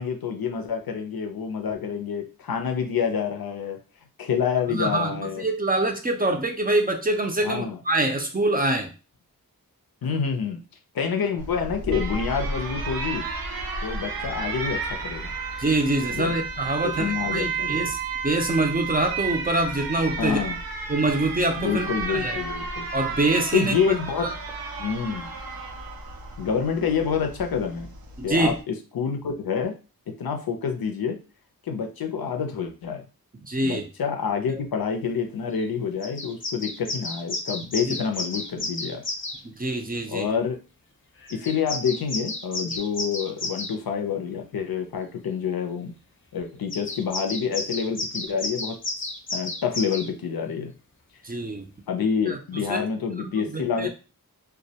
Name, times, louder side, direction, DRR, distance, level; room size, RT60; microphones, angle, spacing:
voice 1, 0.0-3.8 4.2-5.4 7.4-7.8 10.0-10.6 10.9-13.3 13.8-15.3 16.1-16.3 16.8-17.9 20.2-20.6 21.6-22.9 23.5-24.3 24.8-25.3 26.4-27.9 28.2-29.8 30.1-31.2 31.7-33.1 33.6-39.0 40.1-40.6 41.3-45.9 46.3-48.8 49.3-50.7 51.9-53.9, left 6 dB, 75° left, 4 dB, 0.5 m, -27 dB
voice 2, 4.7-8.9 15.6-18.0 18.2-20.4 20.9-21.9 22.1-22.4 22.9-23.7 24.2-24.3 28.2-28.6 33.4-33.9 34.5-34.6 37.9-38.0 39.4-40.3 51.2-51.7 52.3-52.8 53.2-53.9, right 2 dB, 25° right, 3 dB, 0.5 m, -25 dB
Alarm, 11.4-28.6, right 4 dB, 75° right, 0.5 m, -32 dB
sound 1, 35.5-35.6 36.0-39.4 41.2-43.8 46.7-50.1, left 2 dB, 35° left, 0.6 m, -32 dB
2.2 x 2.0 x 2.7 m, 0.32 s
wide cardioid pair, 60°, 36 cm